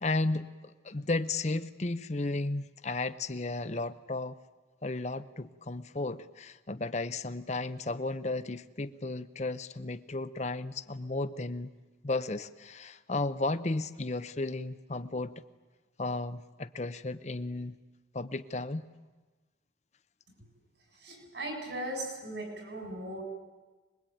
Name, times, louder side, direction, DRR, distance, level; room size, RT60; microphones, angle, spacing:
voice 1, 0.0-4.3 4.8-11.7 12.0-15.4 16.0-17.8 18.1-18.9, left 2 dB, 35° left, 0.7 m, -34 dB
voice 2, 21.0-23.2, right 1 dB, 65° right, 7.3 m, -38 dB
25.0 x 21.5 x 9.2 m
head